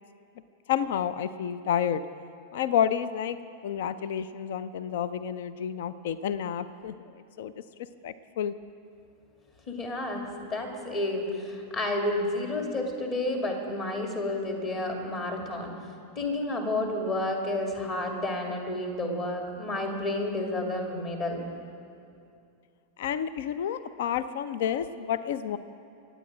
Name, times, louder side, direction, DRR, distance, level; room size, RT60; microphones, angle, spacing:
voice 1, 0.7-2.0 2.5-3.4 3.6-7.5 8.0-8.5 23.0-25.6, left 9 dB, 55° left, 15 dB, 0.5 m, -30 dB
voice 2, 9.7-15.7 16.2-21.4, left 2 dB, 35° left, 2 dB, 2.6 m, -30 dB
26.0 x 9.0 x 5.0 m, 2.5 s
figure-of-eight pair, 90°, 0 cm